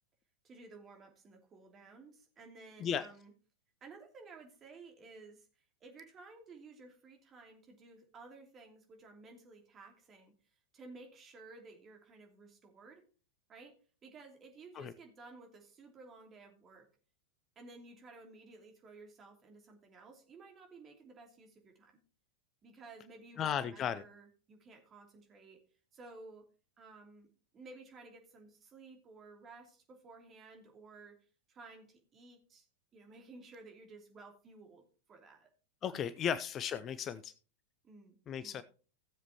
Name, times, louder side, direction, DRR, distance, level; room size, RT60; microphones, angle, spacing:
voice 1, 0.4-3.3 3.8-13.0 13.5-13.8 14.0-16.9 17.5-22.0 22.6-25.6 25.9-26.4 26.8-27.3 27.5-32.7 32.9-35.5 35.9-36.0 37.8-38.6, right 3 dB, 25° right, 2 dB, 3.0 m, -55 dB
voice 2, 23.4-24.0 35.8-37.3 38.3-38.6, left 8 dB, 30° left, 14 dB, 0.5 m, -35 dB
16.5 x 7.4 x 3.0 m, 0.37 s
figure-of-eight pair, 90°, 0 cm